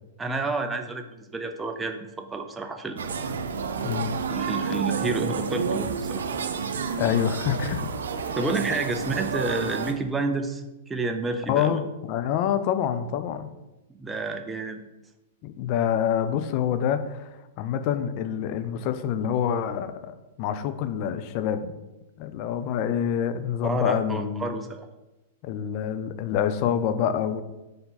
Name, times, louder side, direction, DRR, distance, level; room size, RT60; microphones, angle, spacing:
voice 1, 0.2-3.2 4.3-6.2 8.4-11.8 14.0-14.8 23.6-24.9, right 3 dB, 10° right, 5 dB, 0.5 m, -30 dB
sound 1, 3.0-9.9, right 5 dB, 85° right, 0.6 m, -30 dB
voice 2, 3.8-4.2 7.0-7.9 8.2-8.4 11.5-13.5 15.4-21.8 22.2-24.5 25.4-27.4, left 9 dB, 45° left, 10 dB, 0.5 m, -27 dB
4.9 x 4.8 x 4.0 m, 1.0 s
hypercardioid pair, 125°, 0 cm